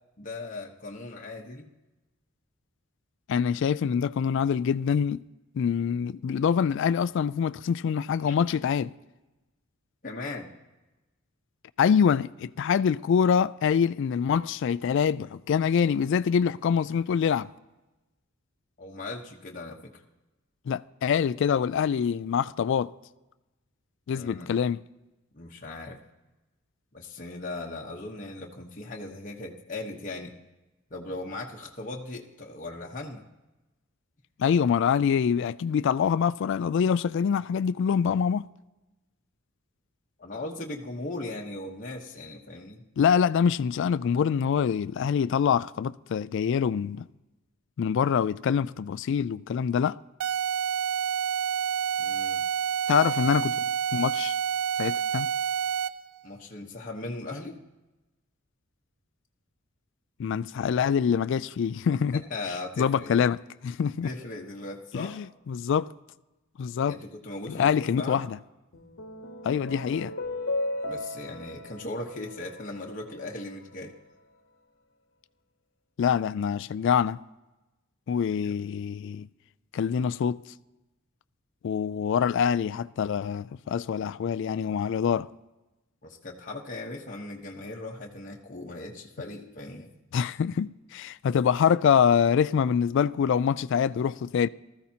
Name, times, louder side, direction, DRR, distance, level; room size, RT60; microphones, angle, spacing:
voice 1, 0.2-1.7 8.3-8.4 10.0-10.5 18.8-20.0 24.1-24.5 25.3-26.0 26.9-30.3 30.9-33.3 40.2-42.8 52.0-52.4 56.2-57.6 62.1-63.3 64.0-65.1 66.9-68.3 70.8-74.0 78.4-78.5 86.0-89.9, left 2 dB, 40° left, 1.0 m, -38 dB
voice 2, 3.3-5.2 5.6-8.9 11.8-17.5 20.7-22.9 24.1-24.8 34.4-38.5 43.0-47.0 47.8-50.0 52.9-53.5 53.9-54.3 54.8-55.3 60.2-62.2 62.8-63.4 63.6-64.1 64.9-65.9 66.6-67.0 67.5-68.4 69.4-70.1 76.0-77.2 78.1-79.3 79.7-80.4 81.6-85.3 90.1-94.5, left 7 dB, 60° left, 0.3 m, -25 dB
sound 1, 50.2-56.1, right 8 dB, 75° right, 0.4 m, -28 dB
sound 2, 68.7-73.3, left 2 dB, 80° left, 1.1 m, -36 dB
19.0 x 14.0 x 2.8 m
head